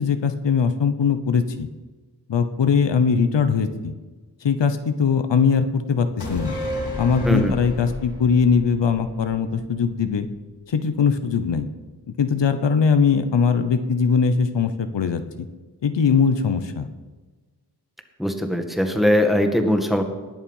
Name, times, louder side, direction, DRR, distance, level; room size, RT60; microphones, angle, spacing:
voice 1, 0.0-1.7 2.3-3.9 4.4-6.5 7.0-10.3 10.7-11.7 12.2-15.2 15.8-16.9, left 6 dB, 80° left, 9 dB, 0.9 m, -20 dB
sound 1, 6.2-9.8 10.1-10.2, left 1 dB, 65° left, 4.1 m, -31 dB
voice 2, 18.2-20.0, left 1 dB, ahead, 5 dB, 1.9 m, -20 dB
20.0 x 7.2 x 5.5 m, 1.3 s
wide cardioid pair, 65°, 42 cm